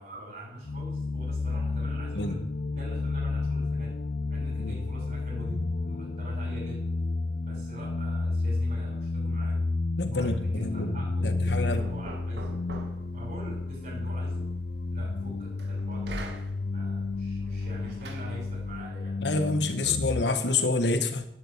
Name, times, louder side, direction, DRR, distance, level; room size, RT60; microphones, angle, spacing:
voice 1, 0.0-2.4 2.7-4.0 4.3-6.8 7.4-9.6 10.1-12.6 13.1-14.5 14.9-16.3 16.7-19.3 19.8-19.9, right 1 dB, 45° right, -6 dB, 6.5 m, -44 dB
sound 1, 0.7-20.2, left 3 dB, 45° left, 0.6 m, -31 dB
voice 2, 10.0-11.8 19.2-21.3, left 3 dB, 75° left, 8 dB, 1.7 m, -28 dB
Knock, 11.1-19.0, right 1 dB, 70° right, 2.1 m, -45 dB
12.5 x 11.0 x 8.5 m, 0.76 s
head